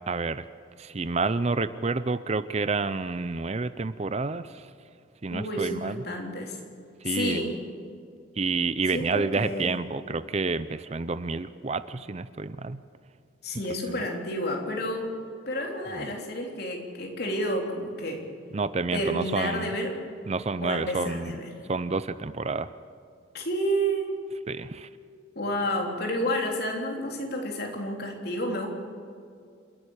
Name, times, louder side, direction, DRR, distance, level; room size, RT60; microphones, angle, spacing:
voice 1, 0.1-0.4 0.8-4.5 5.2-6.0 7.0-7.5 8.4-12.8 18.5-19.7 20.3-21.3 21.7-22.7 24.5-24.9, right 3 dB, 35° right, 14 dB, 0.5 m, -29 dB
voice 2, 5.3-6.6 7.0-7.5 8.9-9.8 13.4-15.1 15.5-18.2 18.9-20.0 20.6-21.5 23.3-24.1 25.4-28.7, equal, 55° left, 1 dB, 3.5 m, -30 dB
28.5 x 11.0 x 8.8 m, 2.4 s
head